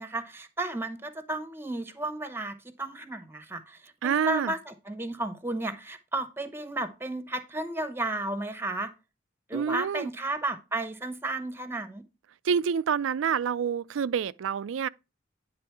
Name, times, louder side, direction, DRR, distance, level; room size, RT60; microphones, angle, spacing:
voice 1, 0.0-8.9 9.5-12.0, right 2 dB, 10° right, 0.9 m, -33 dB
voice 2, 4.0-4.5 9.5-10.1 12.4-14.9, right 7 dB, 90° right, 0.4 m, -27 dB
9.6 x 3.8 x 4.5 m
head